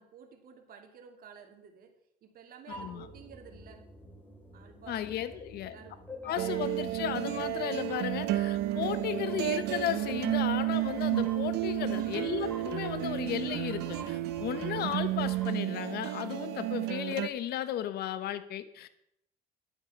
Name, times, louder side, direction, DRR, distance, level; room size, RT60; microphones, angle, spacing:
voice 1, 0.0-1.9 2.2-3.8 4.5-5.4 5.6-6.0 6.2-6.6 11.9-12.4, right 7 dB, 60° right, 4 dB, 2.5 m, -51 dB
voice 2, 2.7-3.1 4.9-5.8 6.2-18.9, left 11 dB, 70° left, 12 dB, 1.1 m, -35 dB
sound 1, 2.7-15.5, equal, 10° left, 3.9 m, -50 dB
sound 2, 6.4-17.3, right 15 dB, 80° right, 0.9 m, -32 dB
11.5 x 8.4 x 6.9 m, 0.75 s
cardioid pair, 110°, 17 cm